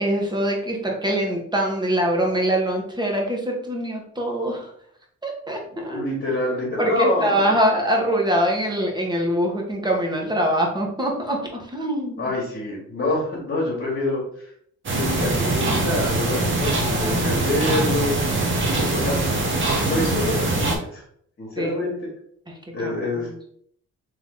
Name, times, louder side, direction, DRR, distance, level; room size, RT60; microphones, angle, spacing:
voice 1, 0.0-4.7 5.2-6.1 6.8-12.3 16.6-17.6 21.6-21.9 22.5-22.6 22.8-23.3, right 1 dB, 15° right, 0 dB, 1.3 m, -24 dB
voice 2, 5.7-7.4 12.2-14.5 14.9-18.1 18.7-19.2 19.8-21.0 21.4-21.9 22.7-23.3, left 2 dB, 40° left, -6 dB, 1.6 m, -26 dB
sound 1, 14.9-20.8, right 2 dB, 40° right, 1.1 m, -22 dB
3.4 x 3.1 x 3.8 m, 0.65 s
cardioid pair, 90°, 30 cm